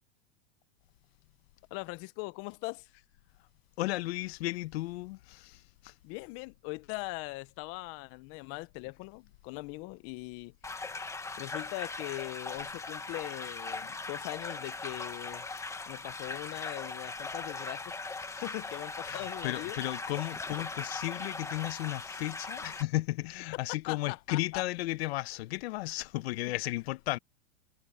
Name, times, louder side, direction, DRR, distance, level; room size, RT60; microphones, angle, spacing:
voice 1, 1.7-3.0 6.0-10.5 11.4-15.5 15.9-18.0 18.4-19.8 23.9-24.6 26.4-26.5, left 24 dB, 40° left, 1.0 m, -41 dB
voice 2, 3.8-5.4 19.1-27.2, left 18 dB, 65° left, 1.4 m, -34 dB
sound 1, 10.6-22.8, left 3 dB, 10° left, 2.0 m, -39 dB
supercardioid pair, 135°, 34 cm